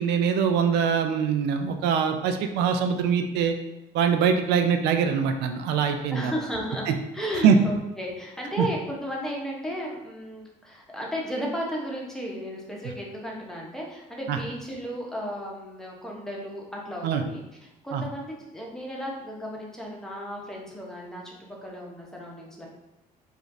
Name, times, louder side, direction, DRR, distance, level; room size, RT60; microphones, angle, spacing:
voice 1, 0.0-3.5 3.9-6.3 6.9-7.0 7.4-7.6 8.6-8.7 14.3-14.4 17.0-17.2 17.9-18.0, right 7 dB, 85° right, 7 dB, 0.4 m, -23 dB
voice 2, 6.1-6.9 7.1-22.7, equal, 5° left, -3 dB, 0.9 m, -34 dB
4.9 x 2.5 x 2.6 m, 0.94 s
cardioid pair, 110°, 17 cm